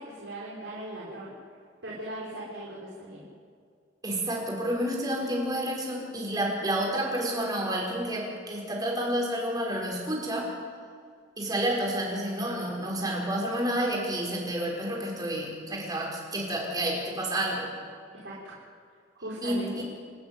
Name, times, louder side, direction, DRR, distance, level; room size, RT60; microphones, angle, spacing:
voice 1, 0.0-1.3 1.8-3.2 18.2-18.5 19.2-19.8, right 1 dB, 75° right, -6 dB, 4.7 m, -38 dB
voice 2, 4.0-10.5 11.4-17.7 19.4-19.8, right 1 dB, 20° right, -2 dB, 5.8 m, -30 dB
29.5 x 9.9 x 9.4 m, 2.2 s
head